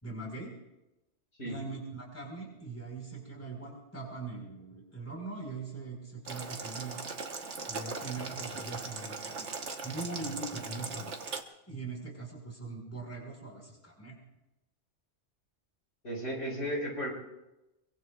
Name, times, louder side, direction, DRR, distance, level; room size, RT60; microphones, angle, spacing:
voice 1, 0.0-0.5 1.4-7.0 7.7-9.5 9.8-11.2 11.7-14.1, right 3 dB, 10° left, -1 dB, 4.4 m, -41 dB
Boiling, 6.3-11.4, right 4 dB, 80° right, 1.5 m, -39 dB
voice 2, 16.0-17.1, equal, 80° left, -1 dB, 5.4 m, -34 dB
24.5 x 23.5 x 2.4 m, 0.96 s
omnidirectional pair, 1.2 m